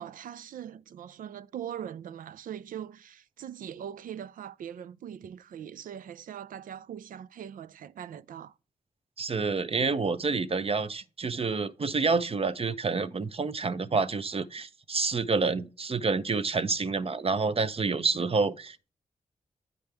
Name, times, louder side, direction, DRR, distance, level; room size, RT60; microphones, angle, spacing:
voice 1, 0.0-8.5, right 9 dB, 85° right, 0.4 m, -41 dB
voice 2, 9.2-18.8, right 4 dB, 45° right, 0.7 m, -28 dB
9.1 x 5.2 x 3.3 m
cardioid pair, 50°, 14 cm